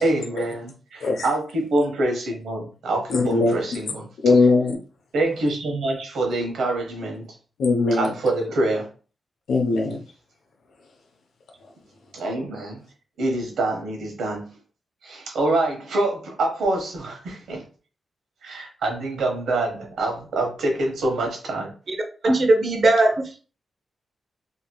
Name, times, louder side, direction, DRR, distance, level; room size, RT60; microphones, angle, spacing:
voice 1, 0.0-4.4 5.1-7.3 7.9-8.9 12.1-12.8 13.2-14.5 15.0-17.6 18.4-21.7, right 2 dB, 90° right, 2 dB, 0.9 m, -25 dB
voice 2, 3.1-3.6 4.2-4.8 7.6-8.1 9.5-10.0, left 3 dB, 85° left, 1 dB, 0.5 m, -19 dB
voice 3, 22.2-23.4, right 2 dB, 50° right, 3 dB, 0.6 m, -19 dB
2.9 x 2.8 x 2.2 m, 0.38 s
cardioid pair, 105°, 0 cm